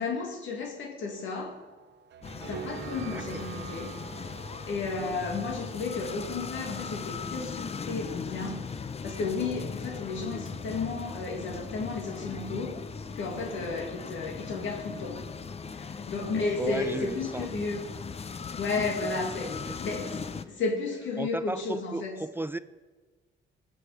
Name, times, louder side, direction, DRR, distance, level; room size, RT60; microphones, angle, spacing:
voice 1, 0.0-1.6 2.5-4.0 4.7-8.6 9.0-12.8 13.2-15.3 15.7-17.9 18.5-20.2 20.5-22.2, left 4 dB, 75° left, 0 dB, 2.2 m, -33 dB
sound 1, 1.0-6.6, right 9 dB, 60° right, 0.8 m, -45 dB
sound 2, 2.2-20.4, left 5 dB, 30° left, 0.7 m, -38 dB
voice 2, 3.0-3.4 16.6-17.5 19.4-19.8 21.2-22.6, right 2 dB, 10° right, 14 dB, 0.4 m, -35 dB
19.0 x 6.6 x 4.8 m, 1.4 s
cardioid pair, 90°, 20 cm